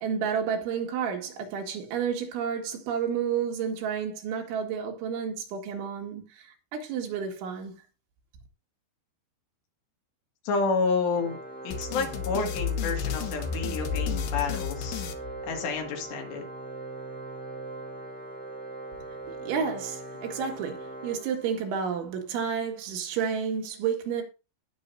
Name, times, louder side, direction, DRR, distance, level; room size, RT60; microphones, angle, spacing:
voice 1, 0.0-7.8 19.4-24.2, right 7 dB, 80° right, 4.2 m, -31 dB
voice 2, 10.5-11.4 11.6-15.0 15.5-16.5, left 4 dB, 70° left, 4.1 m, -29 dB
Organ, 11.1-21.9, right 2 dB, 5° left, 1.3 m, -40 dB
sound 1, 11.7-16.0, left 7 dB, 90° left, 1.8 m, -32 dB
18.5 x 6.5 x 2.7 m
omnidirectional pair, 5.3 m